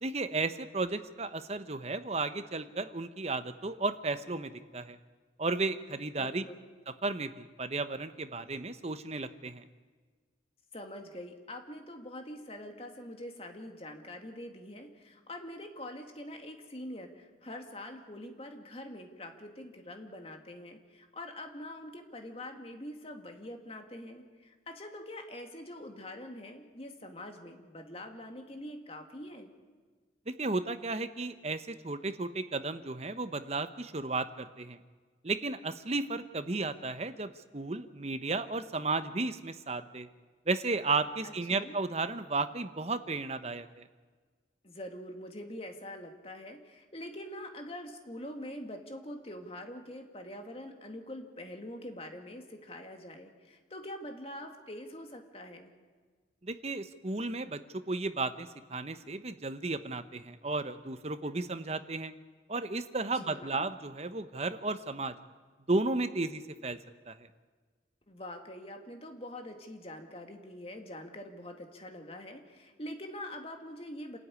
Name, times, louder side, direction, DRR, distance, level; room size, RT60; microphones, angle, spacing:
voice 1, 0.0-5.0 5.4-6.4 7.0-9.6 30.3-34.8 35.2-40.1 40.5-43.9 56.4-62.1 62.5-65.1 65.7-66.8 67.1-67.2, right 3 dB, 35° right, 11 dB, 0.9 m, -34 dB
voice 2, 6.2-6.7 10.7-29.5 41.2-41.7 44.6-55.7 63.1-63.6 68.1-74.2, left 1 dB, 30° left, 4 dB, 2.1 m, -44 dB
27.5 x 13.5 x 9.7 m, 1.5 s
head